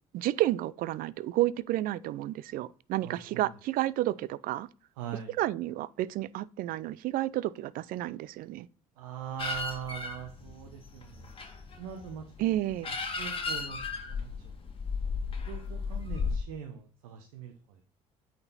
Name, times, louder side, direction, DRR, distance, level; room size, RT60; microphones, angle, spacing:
voice 1, 0.1-4.7 5.4-8.7 12.4-12.9, right 15 dB, 55° right, 0.4 m, -31 dB
voice 2, 3.0-3.5 5.0-5.4 9.0-11.3 11.8-12.3 12.8-14.5 15.0-15.1 15.5-17.8, right 9 dB, 70° right, 0.9 m, -42 dB
sound 1, 9.4-16.4, left 4 dB, 30° left, 1.9 m, -35 dB
8.5 x 4.3 x 4.0 m
figure-of-eight pair, 55°, 18 cm